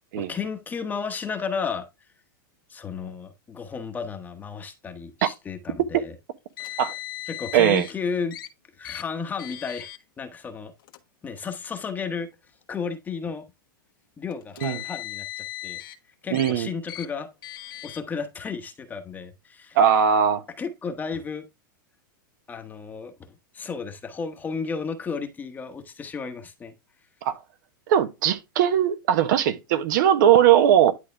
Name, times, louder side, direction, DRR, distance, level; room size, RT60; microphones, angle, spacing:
voice 1, 0.2-1.8 2.7-6.2 6.6-6.8 7.3-8.4 8.8-9.9 10.2-10.7 11.2-12.3 12.7-13.4 14.2-15.8 16.2-17.3 17.8-19.8 20.6-21.4 22.5-26.7, left 5 dB, 15° left, 1.1 m, -33 dB
Car, 6.6-7.9 8.3-8.5 8.8-9.0 9.4-10.0 10.8-11.0 11.9-12.0 14.3-16.0 16.3-16.5 16.9-17.1 17.4-18.0, left 15 dB, 85° left, 1.4 m, -37 dB
voice 2, 7.5-7.8 14.6-14.8 16.3-16.7 19.7-20.4 27.2-27.4 27.9-30.9, right 9 dB, 65° right, 1.2 m, -19 dB
11.0 x 3.8 x 3.4 m
supercardioid pair, 150°, 11 cm